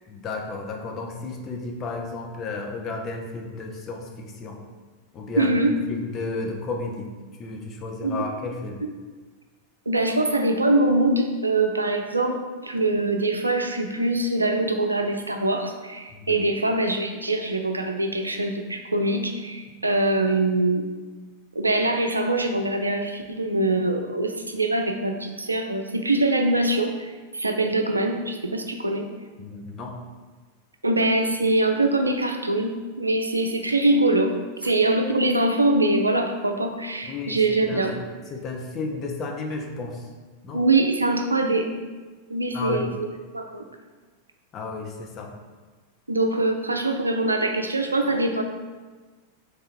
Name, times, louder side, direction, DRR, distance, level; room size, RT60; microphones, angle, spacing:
voice 1, 0.1-4.6 5.1-5.5 5.9-7.1 7.4-8.8 16.1-16.4 29.4-30.0 37.1-37.4 37.7-38.0 38.3-40.0 40.4-40.6 42.5-42.9 44.5-45.3, left 3 dB, 30° left, 2 dB, 0.7 m, -33 dB
voice 2, 5.4-5.8 8.0-8.2 9.9-12.4 12.6-20.8 21.5-29.1 30.8-37.9 40.5-41.7 42.3-43.1 43.3-43.6 46.1-48.4, right 2 dB, 80° right, 4 dB, 0.4 m, -23 dB
3.6 x 3.3 x 4.4 m, 1.4 s
figure-of-eight pair, 90°, 0 cm